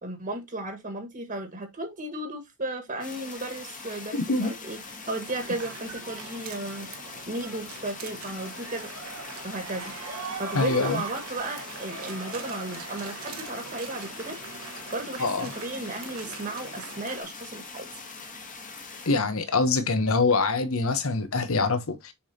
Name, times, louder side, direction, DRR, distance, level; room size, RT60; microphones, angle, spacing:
voice 1, 0.0-4.8 5.1-6.9 7.3-8.9 9.4-10.0 10.4-14.4 14.9-17.9, right 2 dB, 40° right, 1.6 m, -34 dB
sound 1, 3.0-19.1, left 4 dB, 35° left, 1.7 m, -42 dB
voice 2, 4.1-4.5 10.5-11.0 15.2-15.5 19.1-22.1, left 3 dB, 65° left, 1.0 m, -24 dB
sound 2, 5.0-17.2, right 4 dB, 75° right, 1.3 m, -41 dB
6.9 x 5.1 x 2.8 m
head